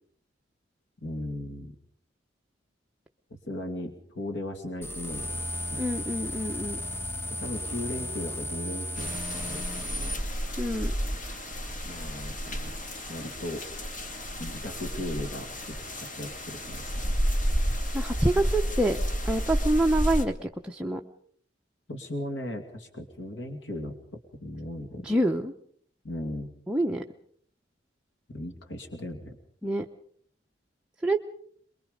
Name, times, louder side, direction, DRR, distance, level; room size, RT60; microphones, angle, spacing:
voice 1, 1.0-1.8 3.5-6.1 7.4-10.2 11.8-12.7 13.1-13.7 14.4-17.1 21.9-25.1 26.0-26.5 28.3-29.4, left 1 dB, 80° left, 5 dB, 2.6 m, -37 dB
sound 1, 4.8-10.1, left 1 dB, 15° left, 1.3 m, -34 dB
voice 2, 5.8-6.8 10.6-10.9 17.9-19.0 19.2-21.0 25.0-25.5 26.7-27.0 29.6-29.9 31.0-31.3, right 1 dB, 5° right, 1 dB, 0.8 m, -26 dB
sound 2, 9.0-20.2, equal, 45° left, 2.3 m, -31 dB
24.0 x 22.5 x 5.2 m, 0.62 s
head